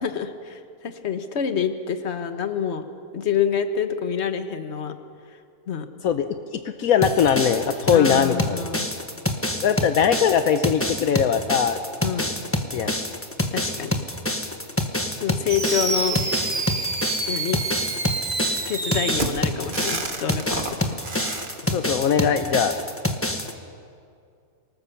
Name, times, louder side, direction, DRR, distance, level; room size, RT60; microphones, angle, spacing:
voice 1, 0.0-2.8 3.1-5.0 5.7-5.9 7.9-8.9 12.0-12.3 13.5-14.0 15.2-16.2 17.3-17.6 18.5-21.0, left 7 dB, 50° left, 8 dB, 1.4 m, -27 dB
voice 2, 6.0-8.6 9.6-11.8 12.7-13.0 21.7-22.8, left 7 dB, 75° left, 9 dB, 1.2 m, -21 dB
sound 1, 7.0-23.5, left 1 dB, 10° left, 1.2 m, -27 dB
Fireworks, 15.5-21.5, right 3 dB, 35° right, 1.5 m, -28 dB
25.0 x 19.0 x 7.0 m, 2.4 s
omnidirectional pair, 1.5 m